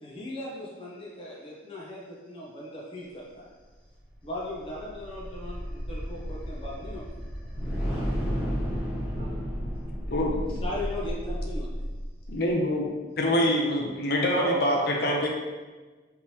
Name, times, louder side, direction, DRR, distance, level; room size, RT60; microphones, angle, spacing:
voice 1, 0.0-3.5 4.2-7.1 10.6-11.9, left 1 dB, 30° left, -6 dB, 0.8 m, -38 dB
sound 1, 4.0-12.4, equal, 5° left, 1.5 m, -32 dB
voice 2, 9.2-9.7 14.3-15.3, right 1 dB, 50° right, -2 dB, 0.6 m, -34 dB
voice 3, 10.1-10.6 12.3-12.9 13.2-15.3, left 1 dB, 55° left, -1 dB, 0.5 m, -25 dB
3.5 x 3.0 x 2.8 m, 1.3 s
head